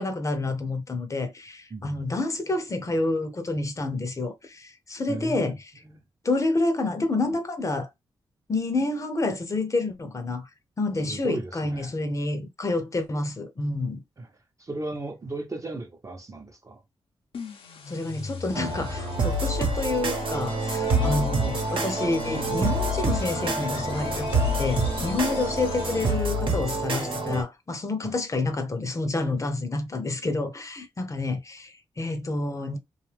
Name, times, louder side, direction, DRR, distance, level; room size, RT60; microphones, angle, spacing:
voice 1, 0.0-5.6 6.2-7.9 8.5-10.5 10.8-14.0 17.9-32.8, left 2 dB, 35° left, 0.6 m, -28 dB
voice 2, 5.1-5.5 5.8-6.0 11.1-12.0 14.2-14.3 14.6-16.8 28.0-28.2, right 2 dB, 35° right, 0.7 m, -36 dB
sound 1, 17.3-26.5, left 5 dB, 90° left, 0.6 m, -38 dB
sound 2, 18.5-27.4, right 2 dB, 70° right, 0.9 m, -27 dB
2.5 x 2.3 x 3.2 m
cardioid pair, 85°, 9 cm